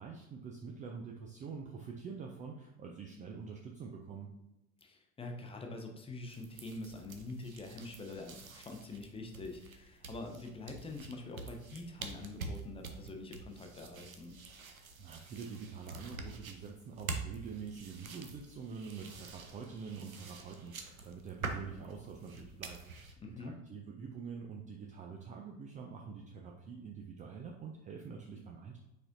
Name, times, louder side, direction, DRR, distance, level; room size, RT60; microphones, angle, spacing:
voice 1, 0.0-4.3 15.0-28.8, right 5 dB, 20° right, 1 dB, 0.4 m, -46 dB
voice 2, 4.8-14.3 23.2-23.5, left 2 dB, 15° left, 2 dB, 0.7 m, -45 dB
sound 1, 6.3-23.1, right 3 dB, 85° right, 0.6 m, -47 dB
4.8 x 4.3 x 2.5 m, 0.96 s
figure-of-eight pair, 70°, 41 cm